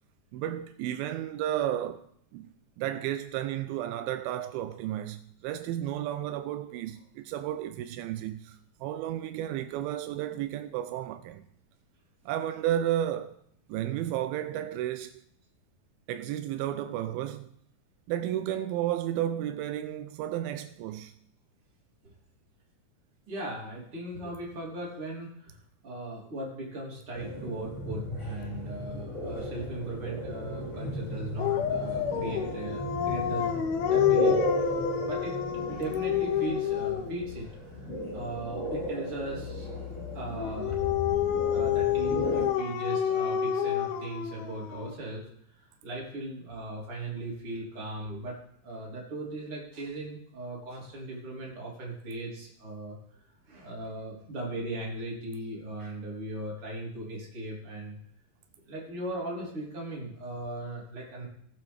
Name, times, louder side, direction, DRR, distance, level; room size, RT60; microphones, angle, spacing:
voice 1, 0.3-2.1 2.3-11.5 12.3-13.4 13.7-15.1 16.1-17.5 18.1-21.1, right 12 dB, 85° right, 2.4 m, -32 dB
voice 2, 23.3-25.5 25.8-35.4 35.7-37.5 37.8-39.7 40.1-40.8 41.5-45.2 45.6-48.4 48.6-53.0 53.5-58.0 58.7-61.3, right 1 dB, 40° right, 3.9 m, -38 dB
sound 1, 27.1-42.5, equal, 20° left, 3.4 m, -35 dB
Dog, 31.4-37.2 40.4-45.0, left 9 dB, 85° left, 2.9 m, -28 dB
19.0 x 7.6 x 3.5 m
omnidirectional pair, 4.2 m